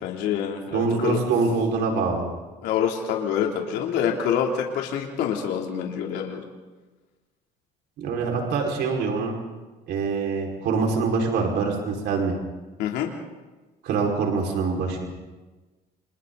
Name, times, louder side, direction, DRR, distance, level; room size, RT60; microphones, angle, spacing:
voice 1, 0.0-1.2 2.6-6.5 12.8-13.1, left 8 dB, 90° left, 1 dB, 3.1 m, -26 dB
voice 2, 0.7-2.2 8.0-9.3 9.9-12.3 13.8-15.1, right 4 dB, 80° right, 1 dB, 5.2 m, -24 dB
29.0 x 28.5 x 4.1 m, 1.2 s
cardioid pair, 110°, 17 cm